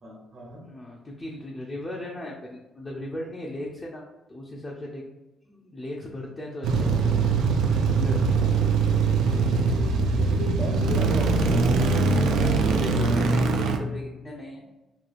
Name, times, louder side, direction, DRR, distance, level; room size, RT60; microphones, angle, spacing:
voice 1, 0.0-0.7 10.1-11.5 12.0-12.8, equal, 50° right, -2 dB, 0.9 m, -36 dB
voice 2, 0.7-4.0 4.3-5.0 5.4-6.9 7.1-7.2 7.8-8.6 12.3-14.7, left 1 dB, 25° left, -3 dB, 0.5 m, -37 dB
sound 1, 6.6-13.8, right 4 dB, 85° right, 0.3 m, -22 dB
3.0 x 2.3 x 2.4 m, 1.0 s
cardioid pair, 90°, 0 cm